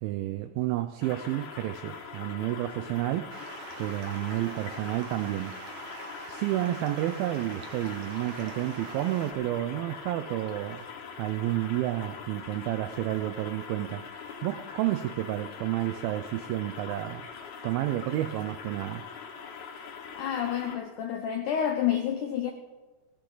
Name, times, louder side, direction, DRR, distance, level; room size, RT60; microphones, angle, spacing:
voice 1, 0.0-3.4 3.8-5.8 6.3-10.9 11.2-17.3 17.6-19.1, right 14 dB, 85° right, 2.1 m, -31 dB
sound 1, 1.0-20.8, left 6 dB, 60° left, 2.2 m, -43 dB
Stream, 3.3-9.3, right 4 dB, 65° right, 1.4 m, -44 dB
voice 2, 20.2-22.5, left 9 dB, 85° left, 1.7 m, -29 dB
17.0 x 16.0 x 3.9 m
omnidirectional pair, 4.8 m